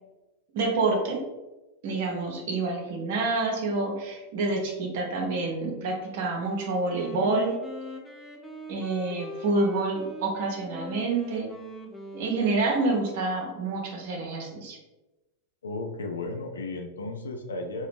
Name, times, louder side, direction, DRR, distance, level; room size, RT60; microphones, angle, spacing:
voice 1, 0.5-1.2 1.8-7.5 8.7-11.5 12.1-14.8, right 3 dB, 50° right, 1 dB, 0.7 m, -28 dB
Wind instrument woodwind instrument, 6.4-13.2, equal, 5° left, 0.4 m, -41 dB
voice 2, 15.6-17.9, left 2 dB, 70° left, 4 dB, 0.4 m, -34 dB
2.8 x 2.0 x 3.3 m, 1.1 s
figure-of-eight pair, 90°, 0 cm